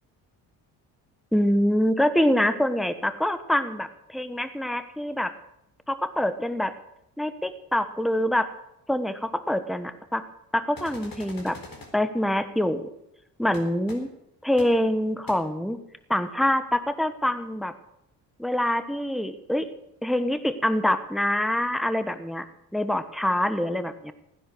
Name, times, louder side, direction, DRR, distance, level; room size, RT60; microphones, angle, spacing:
voice 1, 1.3-5.3 5.9-6.7 7.2-8.5 8.9-10.2 10.5-11.6 11.9-12.9 13.4-14.1 14.4-15.8 16.1-17.7 18.4-19.7 20.0-22.4 22.7-24.1, left 1 dB, ahead, 12 dB, 1.2 m, -25 dB
sound 1, 10.8-11.9 13.5-13.6 13.9-14.0 14.6-14.7 15.3-15.4, left 3 dB, 50° left, 4.1 m, -43 dB
16.0 x 10.0 x 6.2 m, 0.84 s
hypercardioid pair, 50°, 44 cm